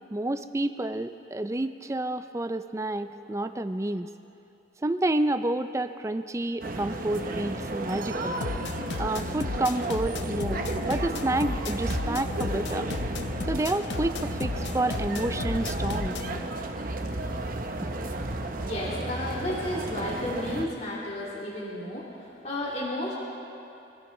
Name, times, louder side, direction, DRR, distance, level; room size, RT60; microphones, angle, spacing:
voice 1, 0.0-4.1 4.8-8.4 9.0-12.9 13.5-16.2, right 1 dB, 15° right, 11 dB, 0.4 m, -29 dB
sound 1, 6.6-20.7, right 2 dB, 45° right, 0.8 m, -33 dB
sound 2, 8.4-16.4, left 4 dB, 60° left, 0.5 m, -34 dB
voice 2, 18.7-23.2, left 1 dB, 35° left, -6 dB, 2.4 m, -33 dB
24.5 x 15.0 x 3.2 m, 2.8 s
head